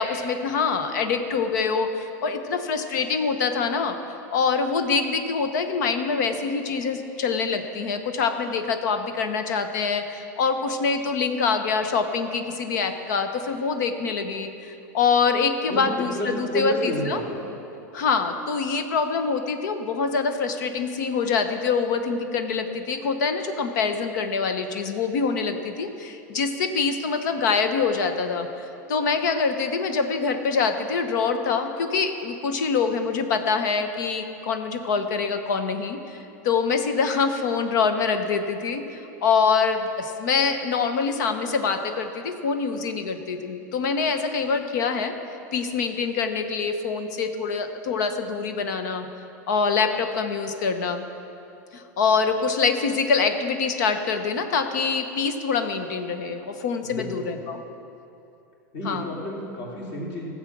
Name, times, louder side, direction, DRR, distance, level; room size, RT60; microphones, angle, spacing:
voice 1, 0.0-4.0 4.3-17.2 17.9-45.1 45.5-49.1 49.5-51.0 51.7-57.6 58.8-59.1, left 5 dB, 75° left, 7 dB, 1.0 m, -25 dB
voice 2, 15.7-17.4 56.8-57.3 58.7-60.3, equal, 55° left, -3 dB, 3.4 m, -30 dB
15.0 x 7.3 x 6.1 m, 2.8 s
supercardioid pair, 125°, 10 cm